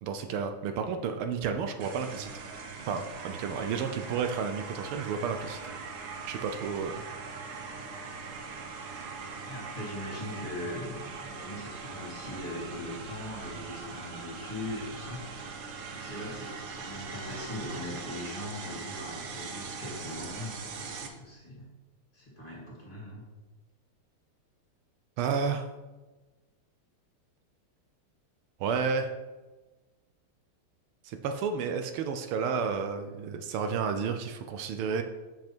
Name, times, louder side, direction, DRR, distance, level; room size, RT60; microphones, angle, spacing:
voice 1, 0.0-2.3 2.9-5.6 6.3-7.0 25.2-25.7 28.6-29.1 31.0-35.0, right 6 dB, 80° right, 7 dB, 1.5 m, -31 dB
sound 1, 1.8-21.1, right 4 dB, 60° right, 1.1 m, -41 dB
voice 2, 9.4-15.3 15.9-21.7 22.1-23.2, left 1 dB, 25° left, -4 dB, 2.3 m, -40 dB
7.7 x 5.9 x 4.4 m, 1.2 s
omnidirectional pair, 2.4 m